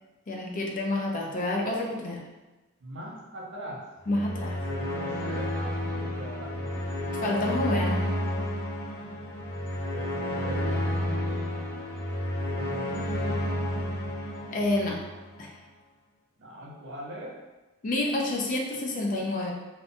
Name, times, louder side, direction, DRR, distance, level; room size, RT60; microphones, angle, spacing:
voice 1, 0.3-2.2 4.1-4.6 7.2-8.1 14.5-15.0 15.4-15.6 17.8-19.5, left 2 dB, 35° left, -1 dB, 0.4 m, -28 dB
voice 2, 2.8-3.9 4.7-6.8 9.9-11.6 12.4-13.6 16.4-17.4, right 1 dB, 55° right, -2 dB, 0.5 m, -41 dB
sound 1, 4.0-15.4, left 1 dB, 55° left, 1.4 m, -31 dB
2.7 x 2.1 x 2.5 m, 1.1 s
head